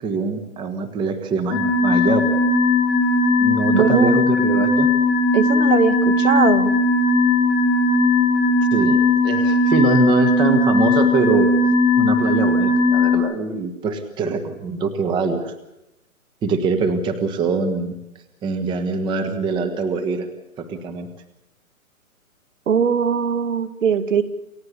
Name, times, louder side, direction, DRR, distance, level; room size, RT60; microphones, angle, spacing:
voice 1, 0.0-2.4 3.4-4.9 8.7-11.5 12.0-15.5 16.4-17.9 18.4-20.3 20.6-21.1, right 4 dB, 10° right, 6 dB, 1.3 m, -23 dB
sound 1, 1.5-13.2, left 2 dB, 35° left, 7.5 m, -18 dB
voice 2, 3.7-4.2 5.3-6.7 22.7-24.2, right 7 dB, 60° right, 12 dB, 2.3 m, -20 dB
28.5 x 16.0 x 8.3 m, 0.90 s
hypercardioid pair, 150°, 43 cm